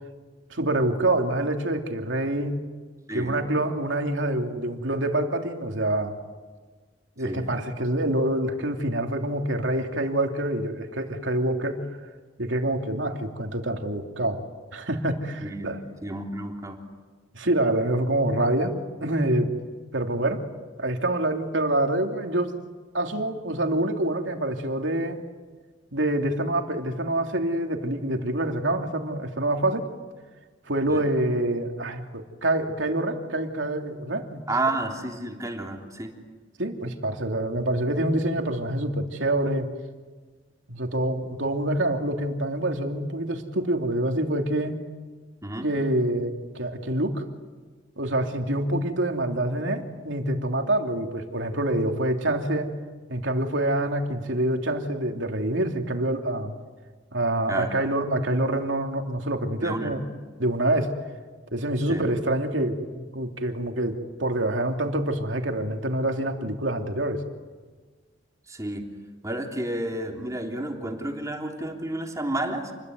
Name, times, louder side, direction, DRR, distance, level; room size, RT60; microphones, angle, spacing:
voice 1, 0.5-2.6 3.1-6.2 7.2-11.8 12.4-14.4 14.7-15.8 17.3-19.5 19.9-20.4 20.8-22.5 22.9-25.2 25.9-29.9 30.7-34.4 36.6-39.7 40.7-44.8 45.6-47.2 48.0-52.7 53.1-56.5 57.1-60.0 60.4-60.9 61.5-67.3, right 1 dB, 85° right, 4 dB, 3.0 m, -26 dB
voice 2, 15.4-16.8 30.9-31.0 34.5-36.1 45.4-45.7 57.5-57.7 59.6-59.9 61.9-62.0 68.5-68.8 69.2-72.7, right 2 dB, 20° right, 1 dB, 3.3 m, -31 dB
29.0 x 22.0 x 9.5 m, 1.4 s
head